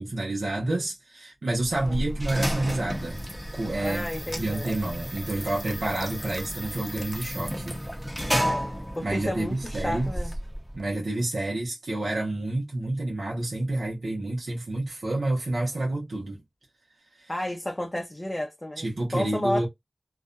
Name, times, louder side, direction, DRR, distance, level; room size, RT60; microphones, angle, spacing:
voice 1, 0.0-3.2 3.5-4.1 4.3-7.8 9.0-10.1 10.7-16.4 17.1-17.3 18.8-19.7, right 2 dB, 80° right, 0.8 m, -29 dB
sound 1, 1.6-10.9, equal, 5° right, 0.8 m, -32 dB
voice 2, 3.8-4.7 8.3-8.7 9.0-10.3 17.3-18.9 19.1-19.7, left 1 dB, 20° left, 0.6 m, -31 dB
2.5 x 2.1 x 2.5 m
cardioid pair, 40°, 0 cm